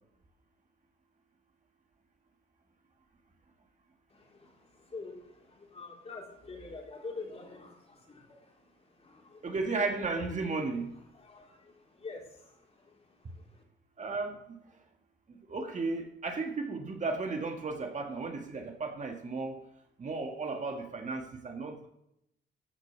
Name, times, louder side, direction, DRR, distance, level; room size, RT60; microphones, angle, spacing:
voice 1, 4.1-9.5 10.1-10.4 11.1-13.6, left 3 dB, 30° left, -1 dB, 3.7 m, -47 dB
voice 2, 9.4-10.9 14.0-14.4 15.5-19.6 20.0-21.9, right 3 dB, 40° right, 3 dB, 1.8 m, -34 dB
14.0 x 5.3 x 6.7 m, 0.79 s
cardioid pair, 90°, 20 cm